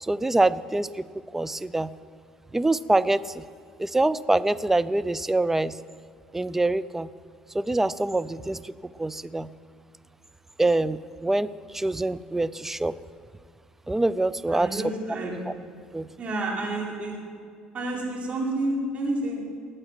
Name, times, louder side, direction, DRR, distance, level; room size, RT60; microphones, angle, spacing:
voice 1, 0.0-1.0 1.3-1.9 2.5-3.4 3.8-5.7 6.3-7.1 7.5-8.7 9.0-9.5 10.6-12.9 13.9-14.8 15.9-16.1, right 2 dB, 10° right, 17 dB, 0.5 m, -25 dB
voice 2, 14.5-15.3 16.2-17.1 17.7-19.4, right 2 dB, 45° right, -2 dB, 4.0 m, -29 dB
18.5 x 7.9 x 5.9 m, 2.3 s
supercardioid pair, 80°, 3 cm